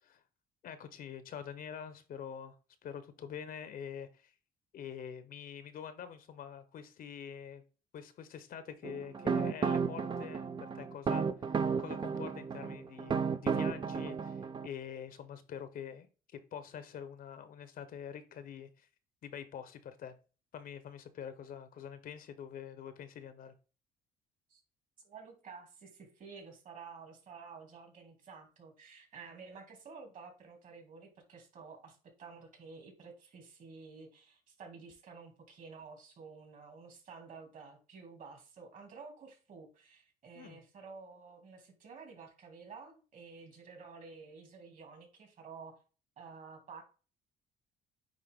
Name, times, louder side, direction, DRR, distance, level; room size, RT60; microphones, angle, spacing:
voice 1, 0.6-2.6 2.8-4.3 4.7-7.6 7.9-11.3 11.8-16.1 16.3-18.9 19.2-20.1 20.5-23.5 40.3-40.6, left 8 dB, 55° left, 0.9 m, -45 dB
sound 1, 8.8-14.7, right 6 dB, 30° right, 0.5 m, -33 dB
voice 2, 25.0-45.8 46.2-46.8, right 5 dB, 50° right, 2.7 m, -51 dB
9.1 x 3.2 x 3.6 m
cardioid pair, 110°, 17 cm